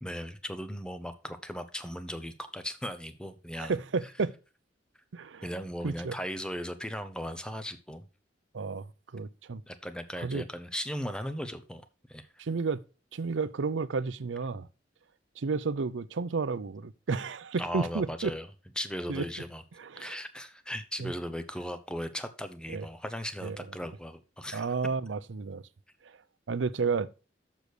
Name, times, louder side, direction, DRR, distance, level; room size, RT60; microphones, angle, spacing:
voice 1, 0.0-4.1 5.4-8.1 9.7-12.4 17.6-19.6 20.0-24.7, equal, 5° left, 0.9 m, -38 dB
voice 2, 3.6-4.3 5.1-5.4 5.8-6.1 8.5-8.8 9.1-9.6 10.2-10.4 12.4-12.8 13.1-14.7 15.4-18.3 19.1-19.2 19.8-20.2 21.0-21.1 22.7-22.8 23.4-23.6 24.5-25.6 26.5-27.1, right 4 dB, 85° right, 0.6 m, -31 dB
7.0 x 6.2 x 6.5 m
head